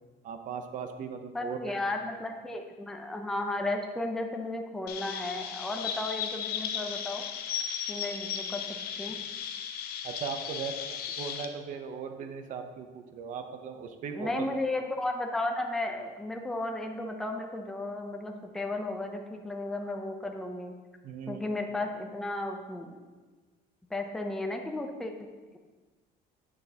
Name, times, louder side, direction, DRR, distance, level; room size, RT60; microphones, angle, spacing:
voice 1, 0.2-1.7 10.0-14.4 21.0-21.4, right 6 dB, 45° right, 6 dB, 0.6 m, -38 dB
voice 2, 1.3-7.2 7.9-8.6 9.0-9.2 14.2-20.7 21.3-22.9 23.9-25.3, left 2 dB, 5° left, 3 dB, 0.4 m, -34 dB
Chirp tweet, 4.9-11.4, left 8 dB, 55° left, 0.6 m, -36 dB
8.9 x 6.4 x 2.8 m, 1.3 s
cardioid pair, 160°, 18 cm